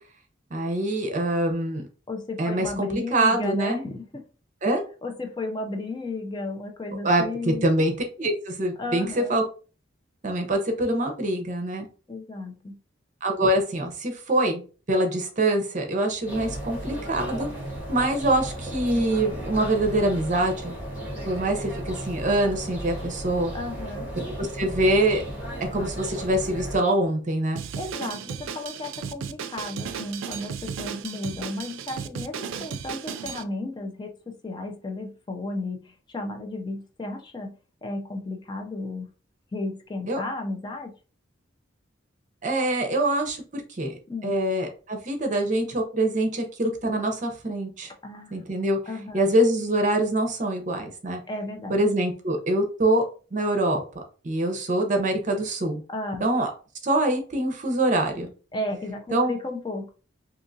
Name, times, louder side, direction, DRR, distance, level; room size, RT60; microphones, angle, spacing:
voice 1, 0.5-1.8 2.4-3.8 4.6-4.8 7.0-7.9 8.2-9.4 10.2-11.9 13.2-14.6 14.9-17.5 17.9-20.7 21.2-23.5 24.4-25.2 25.7-27.6 40.1-40.2 42.4-43.9 44.2-47.9 48.3-48.8 49.1-51.2 51.7-53.0 53.3-53.8 54.2-55.8 56.2-56.5 56.8-58.3 59.1-59.3, right 1 dB, 40° right, 5 dB, 0.7 m, -24 dB
voice 2, 2.1-4.2 5.0-7.7 8.8-9.4 12.1-12.8 23.5-24.1 27.8-37.5 37.8-39.1 39.5-40.9 44.1-44.4 48.0-48.4 48.9-49.3 51.3-51.8 55.9-56.2 58.5-59.9, left 2 dB, 25° left, 4 dB, 0.4 m, -34 dB
sound 1, 16.3-26.8, right 1 dB, 10° right, 1.6 m, -35 dB
Drum kit, 27.6-33.4, right 7 dB, 90° right, 0.3 m, -35 dB
3.5 x 2.8 x 2.6 m, 0.37 s
head